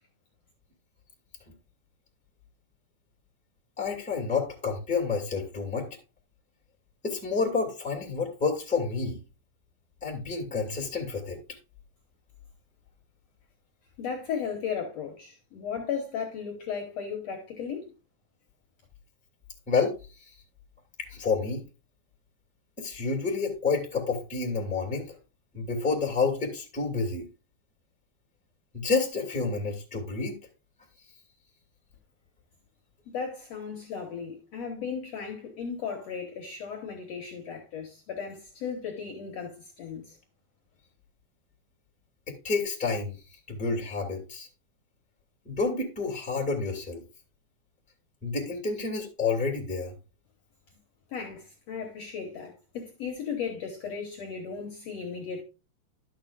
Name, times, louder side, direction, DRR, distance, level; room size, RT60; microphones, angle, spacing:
voice 1, 3.8-5.9 7.0-9.2 10.0-11.4 19.7-19.9 21.1-21.6 22.8-25.1 25.5-27.3 28.7-30.4 42.4-43.2 43.5-44.5 45.4-47.0 48.2-49.9, left 4 dB, 5° left, 1.9 m, -29 dB
voice 2, 14.0-17.9 33.1-40.2 51.1-55.4, left 6 dB, 60° left, 2.0 m, -36 dB
12.0 x 6.5 x 2.5 m
omnidirectional pair, 4.0 m